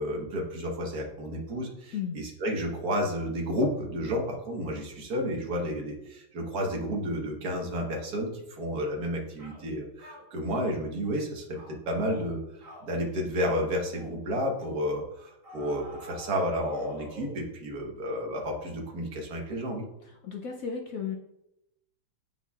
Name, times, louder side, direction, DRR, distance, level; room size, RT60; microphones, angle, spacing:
voice 1, 0.0-19.8, equal, 50° right, 1 dB, 1.5 m, -31 dB
sound 1, 8.8-9.0 9.4-9.6 10.0-10.7 11.0-11.3 11.5-11.8 12.1-12.3 12.6-12.9 13.3-13.6 13.9-14.2 14.6-14.8 15.4-17.5, equal, 20° right, 1.6 m, -47 dB
voice 2, 20.0-21.2, left 7 dB, 75° left, 1 dB, 0.7 m, -34 dB
8.2 x 5.5 x 2.3 m, 0.84 s
omnidirectional pair, 2.3 m